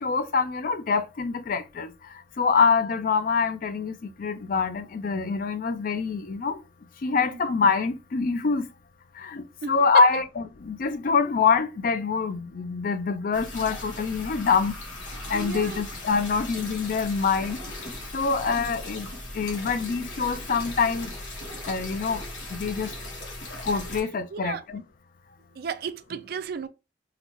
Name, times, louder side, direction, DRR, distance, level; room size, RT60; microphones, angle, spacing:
voice 1, 0.0-1.9 2.4-6.6 7.0-8.7 9.2-14.8 15.3-17.6 18.1-19.1 19.3-21.1 21.7-22.2 22.5-22.9 23.7-24.8, left 5 dB, 50° left, 0.4 m, -25 dB
sound 1, 13.3-24.0, left 1 dB, 85° left, 1.3 m, -38 dB
voice 2, 15.3-15.8 18.4-18.5 24.3-24.6 25.5-26.7, right 6 dB, 55° right, 0.3 m, -34 dB
3.8 x 2.1 x 3.0 m
head